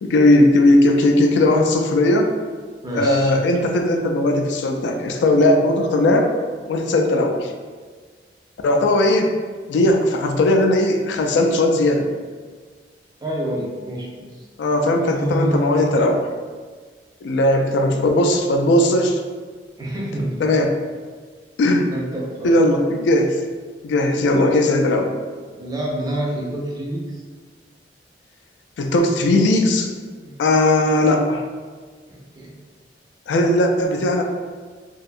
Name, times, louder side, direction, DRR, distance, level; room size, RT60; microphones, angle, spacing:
voice 1, 0.0-2.3 2.9-6.3 6.7-7.5 8.6-9.3 9.7-12.1 14.6-16.2 17.2-19.2 20.4-20.7 21.6-21.9 22.4-23.4 23.8-25.1 28.8-29.9 30.4-31.4 33.3-34.2, left 1 dB, 80° left, 4 dB, 0.3 m, -17 dB
voice 2, 2.8-3.4 13.2-14.5 14.9-16.1 19.8-20.5 21.9-22.5 25.6-27.2 30.2-30.4 32.1-32.6, right 1 dB, 20° right, -3 dB, 0.4 m, -27 dB
2.6 x 2.2 x 2.4 m, 1.5 s
head